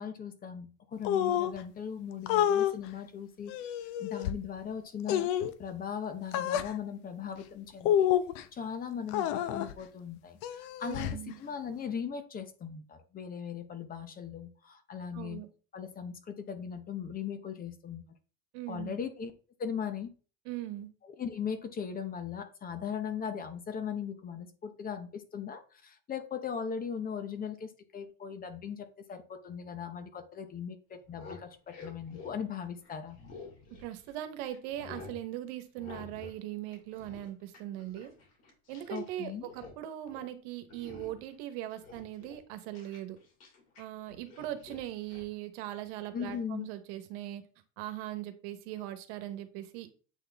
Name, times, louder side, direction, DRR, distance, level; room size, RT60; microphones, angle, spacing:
voice 1, 0.0-5.3 5.6-8.1 8.5-11.1 11.4-15.4 15.7-18.0 18.7-19.3 19.6-20.1 21.2-33.2 38.9-39.5 46.1-46.7, left 7 dB, 25° left, 9 dB, 0.8 m, -39 dB
sound 1, 1.0-1.6 2.3-2.7 3.5-4.3 5.1-5.5 6.3-6.7 7.8-8.4 9.1-9.7 10.4-11.2, left 10 dB, 80° left, 0.7 m, -28 dB
voice 2, 10.8-11.4 15.1-15.5 18.5-19.0 20.4-20.9 33.8-38.1 38.7-43.2 43.8-47.4 47.8-49.9, right 13 dB, 85° right, 10 dB, 1.1 m, -40 dB
sound 2, 30.9-34.2 34.5-35.2 35.8-36.4 36.6-39.1 39.4-39.8 40.0-40.3 40.7-41.3 41.7-43.8 44.1-45.3 46.2-46.4, left 4 dB, 50° left, 2.6 m, -50 dB
8.1 x 4.0 x 3.4 m, 0.38 s
cardioid pair, 145°, 33 cm